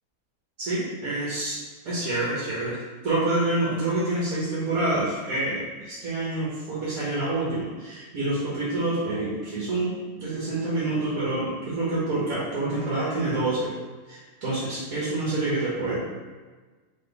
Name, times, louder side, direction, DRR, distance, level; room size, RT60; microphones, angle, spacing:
voice 1, 0.6-1.6 1.8-2.8 3.0-13.7 14.1-16.0, right 2 dB, 80° right, -8 dB, 1.6 m, -27 dB
3.9 x 3.3 x 3.3 m, 1.3 s
omnidirectional pair, 1.5 m